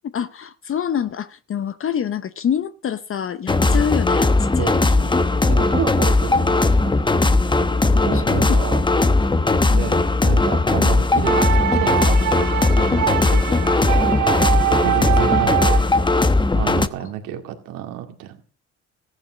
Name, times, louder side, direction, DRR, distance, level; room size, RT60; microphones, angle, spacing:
voice 1, 0.1-4.3 4.6-5.2 7.9-8.7 9.7-9.9 17.0-17.1, left 8 dB, 40° left, 0.8 m, -27 dB
sound 1, 3.5-16.9, left 2 dB, 15° left, 1.0 m, -18 dB
voice 2, 5.5-7.1 8.0-8.8 9.5-15.9 16.5-18.4, right 10 dB, 85° right, 2.3 m, -30 dB
sound 2, 11.2-16.0, right 13 dB, 65° right, 1.5 m, -23 dB
15.0 x 10.5 x 6.2 m
supercardioid pair, 80°, 32 cm